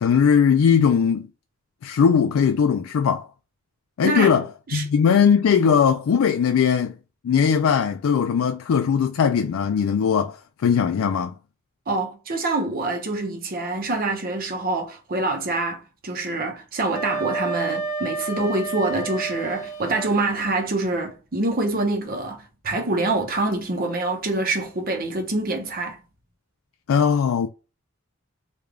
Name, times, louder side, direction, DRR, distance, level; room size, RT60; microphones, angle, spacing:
voice 1, 0.0-1.3 1.8-3.3 4.0-4.5 4.7-6.9 7.2-11.4 26.9-27.5, left 7 dB, 75° left, 0.3 m, -19 dB
voice 2, 4.0-4.3 4.7-4.8 11.9-26.0, right 2 dB, 45° right, 0.7 m, -25 dB
Wind instrument woodwind instrument, 16.9-20.1, right 3 dB, 35° left, 1.0 m, -30 dB
3.4 x 2.3 x 3.4 m
head